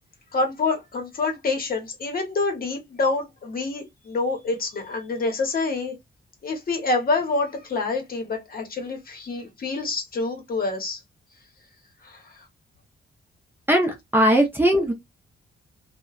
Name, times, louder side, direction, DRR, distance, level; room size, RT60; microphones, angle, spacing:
voice 1, 0.3-5.9 6.4-11.0 12.0-12.2, left 3 dB, 45° left, 0.8 m, -27 dB
voice 2, 13.7-14.9, equal, 10° right, 0.5 m, -19 dB
2.9 x 2.1 x 2.3 m
wide cardioid pair, 150°, 20 cm